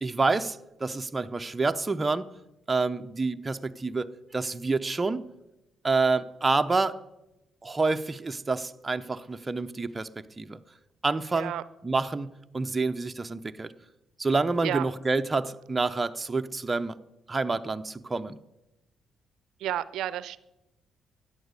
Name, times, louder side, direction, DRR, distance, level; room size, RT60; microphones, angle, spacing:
voice 1, 0.0-2.3 2.7-5.3 5.8-7.0 7.6-10.1 10.4-10.6 11.0-11.5 11.8-13.7 14.2-17.0 17.3-18.4, right 3 dB, 20° right, 0.7 m, -28 dB
voice 2, 11.3-11.6 14.6-14.9 19.6-20.4, right 12 dB, 80° right, 0.5 m, -31 dB
13.5 x 9.6 x 8.1 m
cardioid pair, 90°, 0 cm